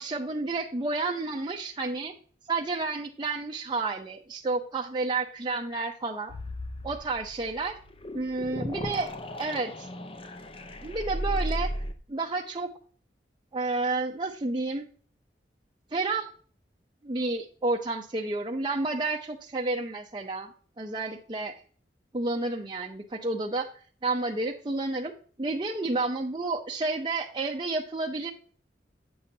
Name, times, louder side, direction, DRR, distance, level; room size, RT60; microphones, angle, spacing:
voice 1, 0.0-2.1 2.5-6.3 6.8-7.8 8.1-9.1 9.4-9.9 10.8-11.7 12.1-12.7 13.5-14.9 15.9-16.3 17.0-20.5 20.8-21.5 22.1-23.7 24.0-25.1 25.4-28.3, right 3 dB, 25° right, 0 dB, 0.6 m, -30 dB
sound 1, 6.3-11.9, equal, 30° left, 0.6 m, -35 dB
8.6 x 6.6 x 2.8 m, 0.43 s
head